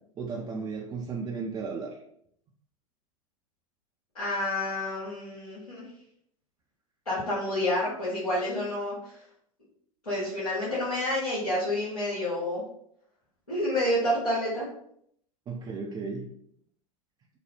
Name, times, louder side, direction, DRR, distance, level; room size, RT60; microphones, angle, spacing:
voice 1, 0.2-2.0 15.5-16.3, right 4 dB, 20° right, -1 dB, 0.3 m, -34 dB
voice 2, 4.1-5.8 7.0-8.9 10.0-12.6 13.5-14.7, left 1 dB, 90° left, -12 dB, 1.2 m, -29 dB
2.9 x 2.0 x 3.2 m, 0.69 s
figure-of-eight pair, 85°, 18 cm